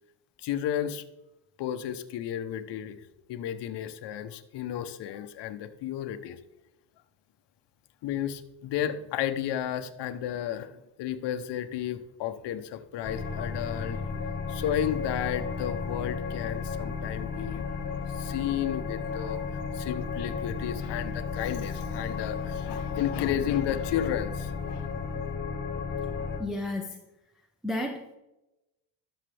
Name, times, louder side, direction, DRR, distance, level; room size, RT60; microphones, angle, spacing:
voice 1, 0.4-1.0 1.6-3.0 3.3-6.4 8.0-10.7 11.0-14.2 14.5-17.6 17.9-24.9, left 10 dB, 65° left, 9 dB, 0.9 m, -33 dB
sound 1, 13.0-26.4, left 5 dB, 25° left, 2.0 m, -33 dB
voice 2, 26.4-27.0 27.6-28.1, left 1 dB, ahead, 0 dB, 0.8 m, -32 dB
12.0 x 6.6 x 3.4 m, 0.94 s
cardioid pair, 100°, 45 cm